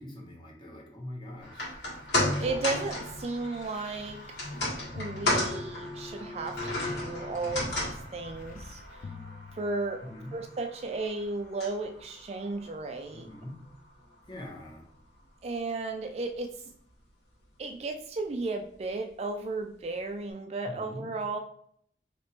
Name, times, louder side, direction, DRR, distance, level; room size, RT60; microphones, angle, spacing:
voice 1, 0.0-1.7 10.0-10.4 13.1-13.6 14.3-14.8 20.6-21.1, left 1 dB, 25° left, -1 dB, 1.0 m, -43 dB
sound 1, 1.4-13.8 14.1-14.2, left 1 dB, 80° left, 1.7 m, -34 dB
sound 2, 1.7-6.2 7.0-10.3 11.0-11.1, left 4 dB, 45° left, 0.4 m, -49 dB
voice 2, 2.4-4.3 4.9-8.8 9.6-10.0 10.3-13.3 15.4-16.6 17.6-21.4, right 3 dB, 35° right, 5 dB, 0.3 m, -34 dB
3.2 x 2.9 x 4.3 m, 0.64 s
head